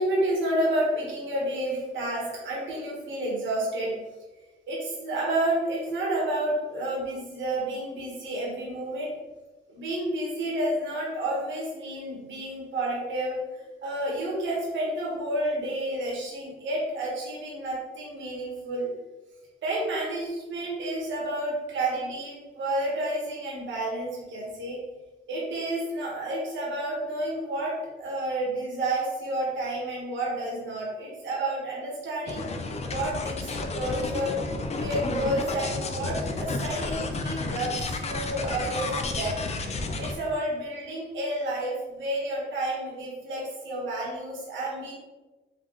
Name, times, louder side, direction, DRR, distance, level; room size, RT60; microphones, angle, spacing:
voice 1, 0.0-3.9 4.7-9.1 9.7-18.9 19.6-24.8 25.3-32.4 32.9-34.4 34.7-39.4 40.0-44.9, right 1 dB, 70° right, -4 dB, 1.3 m, -30 dB
sound 1, 32.3-40.2, left 3 dB, 35° left, 0.5 m, -31 dB
3.9 x 2.5 x 3.6 m, 1.2 s
cardioid pair, 90°, 20 cm